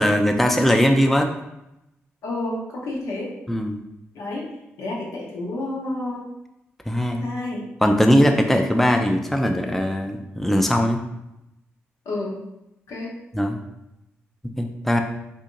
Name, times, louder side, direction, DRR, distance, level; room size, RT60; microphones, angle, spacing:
voice 1, 0.0-1.3 3.5-3.8 6.9-7.2 7.8-11.0 13.3-13.6 14.6-15.0, equal, 5° left, 4 dB, 0.4 m, -20 dB
voice 2, 2.2-3.3 4.1-4.4 4.8-6.2 7.2-7.6 12.0-12.4 12.9-13.1, left 2 dB, 80° left, -3 dB, 1.0 m, -30 dB
2.8 x 2.5 x 3.8 m, 0.89 s
supercardioid pair, 55°, 5 cm